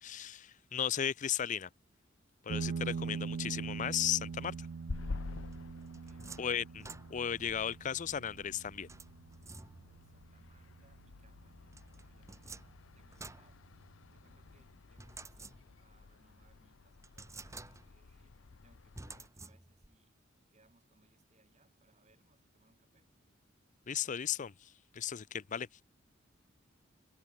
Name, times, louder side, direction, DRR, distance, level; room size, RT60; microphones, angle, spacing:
voice 1, 0.0-1.7 2.4-4.7 6.4-8.9 23.9-25.7, left 9 dB, 40° left, 0.5 m, -36 dB
sound 1, 2.5-11.5, right 5 dB, 70° right, 0.4 m, -43 dB
sound 2, 4.3-19.3, left 3 dB, 85° left, 0.7 m, -50 dB
sound 3, 5.5-7.5 8.9-10.1 11.7-14.2 15.0-16.0 16.4-16.5 17.0-18.1 18.9-20.0, right 3 dB, 15° right, 1.5 m, -51 dB
voice 2, 5.8-6.5 9.4-13.6 14.1-20.1 20.5-23.1, right 2 dB, 35° right, 6.0 m, -71 dB
head